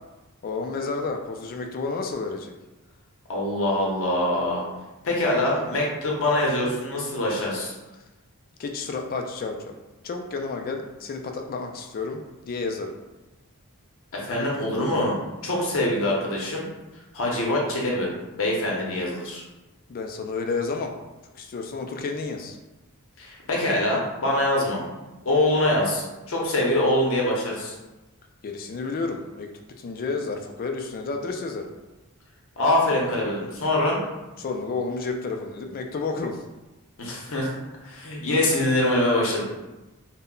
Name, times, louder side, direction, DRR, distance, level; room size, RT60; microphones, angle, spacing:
voice 1, 0.4-2.5 8.6-9.8 10.0-13.0 19.9-20.9 21.3-22.6 28.4-29.5 29.8-31.7 34.4-36.4, left 4 dB, 40° left, 4 dB, 0.3 m, -31 dB
voice 2, 3.3-4.6 5.0-7.7 14.2-15.1 15.4-16.6 17.1-18.1 18.4-19.4 23.2-24.8 25.2-27.7 32.6-34.0 37.0-37.5 37.8-39.4, left 1 dB, 65° left, -2 dB, 0.7 m, -24 dB
2.1 x 2.1 x 3.7 m, 1.1 s
head